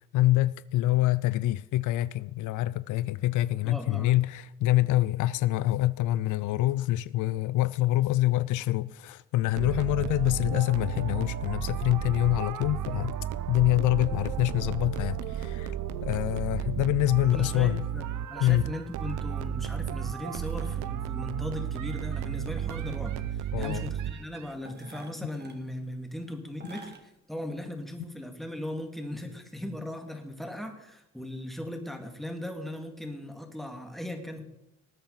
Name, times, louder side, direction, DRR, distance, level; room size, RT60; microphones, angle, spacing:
voice 1, 0.1-13.2 13.5-15.8 16.0-17.9 18.4-18.7 23.5-23.8, left 16 dB, 80° left, 0.5 m, -26 dB
voice 2, 3.6-4.2 17.3-34.4, left 1 dB, ahead, 2.1 m, -38 dB
sound 1, 9.6-24.5, right 10 dB, 80° right, 0.7 m, -33 dB
sound 2, 17.5-17.7 18.9-19.2 20.2-20.9 22.6-23.2 24.7-25.6 26.6-27.0 27.5-27.6, right 3 dB, 35° right, 2.0 m, -50 dB
19.5 x 8.8 x 4.0 m
cardioid pair, 90°, 30 cm